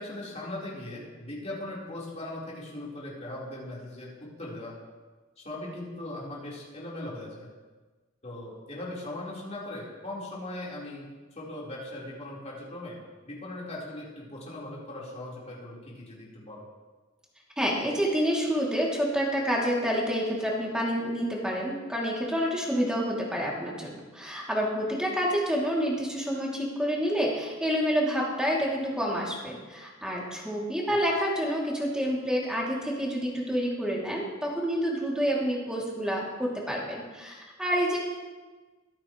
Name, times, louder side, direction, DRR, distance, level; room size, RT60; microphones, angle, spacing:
voice 1, 0.0-4.1 4.4-4.7 5.4-7.5 8.2-11.1 11.4-16.6 30.9-31.0, left 1 dB, 35° left, -6 dB, 4.2 m, -39 dB
voice 2, 17.6-38.0, equal, 5° right, -4 dB, 2.8 m, -28 dB
24.0 x 8.8 x 3.2 m, 1.3 s
head